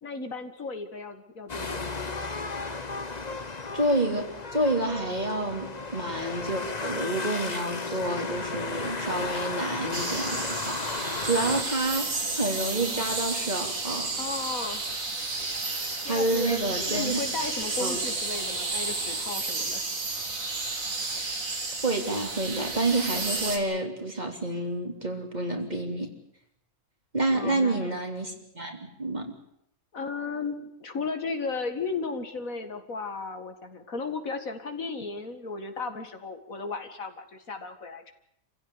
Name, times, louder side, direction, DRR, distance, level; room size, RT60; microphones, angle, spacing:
voice 1, 0.0-2.0 14.2-14.8 16.0-19.8 27.3-28.0 29.9-38.1, left 4 dB, 70° left, 7 dB, 2.4 m, -35 dB
sound 1, 1.5-11.6, left 3 dB, 30° left, 1.4 m, -34 dB
voice 2, 3.7-14.1 16.0-17.2 17.8-18.0 21.8-26.1 27.1-29.3, right 2 dB, 30° right, 3 dB, 3.4 m, -29 dB
sound 2, 9.9-23.6, right 3 dB, 70° right, 3.1 m, -32 dB
27.5 x 16.0 x 9.8 m, 0.74 s
omnidirectional pair, 1.5 m